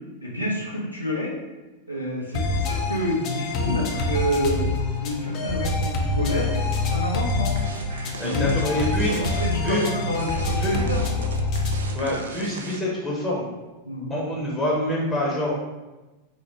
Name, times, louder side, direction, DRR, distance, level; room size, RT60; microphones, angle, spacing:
voice 1, 0.2-1.3 1.9-7.5 8.2-11.4 13.8-14.1, equal, 90° left, -4 dB, 0.7 m, -29 dB
sound 1, 2.3-11.9, left 3 dB, 40° left, 0.5 m, -26 dB
sound 2, 7.3-13.1, right 4 dB, 70° right, 0.3 m, -36 dB
voice 2, 8.2-9.1 9.6-9.9 10.6-10.8 11.9-13.5 14.1-15.5, left 1 dB, 10° left, -5 dB, 0.8 m, -26 dB
4.3 x 2.1 x 3.4 m, 1.1 s
figure-of-eight pair, 90°, 0 cm